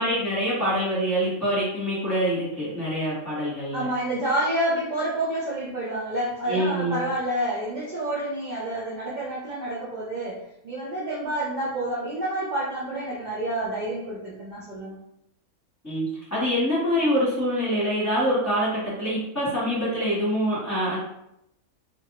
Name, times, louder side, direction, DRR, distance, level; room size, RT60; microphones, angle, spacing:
voice 1, 0.0-3.9 6.5-7.0 15.8-21.0, equal, 10° left, -9 dB, 1.1 m, -25 dB
voice 2, 3.7-10.4 10.6-15.0, right 1 dB, 70° right, -7 dB, 0.4 m, -28 dB
2.6 x 2.5 x 2.8 m, 0.81 s
omnidirectional pair, 1.5 m